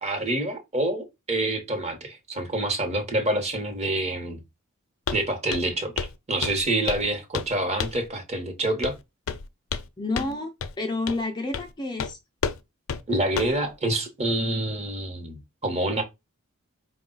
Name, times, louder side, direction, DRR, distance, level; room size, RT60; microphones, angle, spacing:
voice 1, 0.0-4.4 5.1-8.9 13.1-16.0, right 1 dB, 30° right, 1.0 m, -27 dB
Walk footsteps, 5.1-5.2 5.5-5.7 6.0-6.2 6.4-7.1 7.3-7.5 7.8-8.1 8.8-9.0 9.3-9.9 10.2-10.3 10.6-10.7 11.1-11.2 11.5-11.7 12.0-12.1 12.4-12.6 12.9-13.0 13.4-13.6, left 6 dB, 75° left, 0.5 m, -30 dB
voice 2, 10.0-12.2, left 2 dB, 20° left, 0.5 m, -30 dB
4.5 x 2.3 x 3.8 m
head